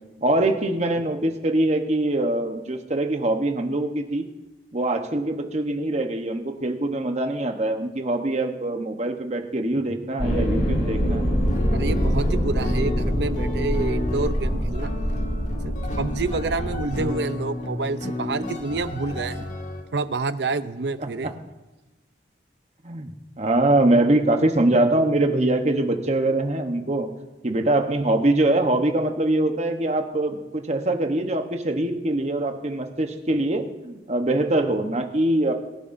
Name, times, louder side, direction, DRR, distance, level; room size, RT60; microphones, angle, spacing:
voice 1, 0.2-4.3 4.7-11.3 22.8-23.1 23.4-27.1 27.4-35.5, right 1 dB, 40° right, 5 dB, 1.0 m, -23 dB
sound 1, 10.2-17.0, equal, 85° left, 4.0 m, -24 dB
sound 2, 11.4-19.8, left 1 dB, 45° left, 1.4 m, -32 dB
voice 2, 11.7-14.9 15.6-19.4 19.9-21.3, right 3 dB, 70° right, 12 dB, 0.6 m, -28 dB
23.5 x 11.0 x 2.7 m, 1.1 s
head